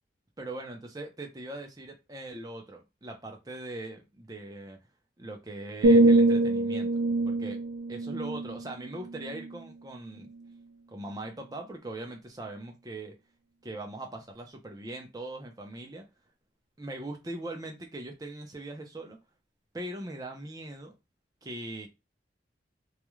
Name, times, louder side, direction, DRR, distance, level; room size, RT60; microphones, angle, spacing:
voice 1, 0.4-4.8 5.2-7.6 7.9-10.3 10.9-13.1 13.6-16.0 16.8-19.2 19.7-20.9 21.4-21.9, right 1 dB, 20° right, 3 dB, 0.5 m, -40 dB
sound 1, 5.8-9.7 10.2-10.5, right 2 dB, 85° right, 0.3 m, -25 dB
2.4 x 2.1 x 3.0 m, 0.25 s
head